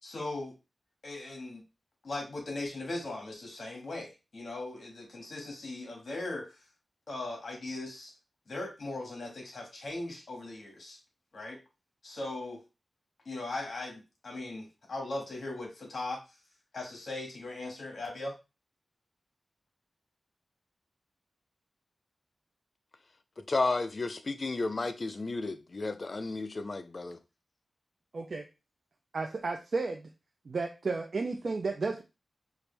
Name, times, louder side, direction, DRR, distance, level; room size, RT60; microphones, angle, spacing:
voice 1, 0.0-0.5 1.0-1.6 2.0-6.6 7.1-8.1 8.5-11.0 11.3-11.6 12.0-12.6 13.2-16.2 16.7-18.3, left 2 dB, 60° left, 1.7 m, -39 dB
voice 2, 23.5-27.2, left 3 dB, 45° left, 0.5 m, -32 dB
voice 3, 28.1-28.4 29.1-30.1 30.5-32.0, right 3 dB, 55° right, 0.4 m, -33 dB
4.5 x 2.5 x 3.3 m
wide cardioid pair, 95°, 0 cm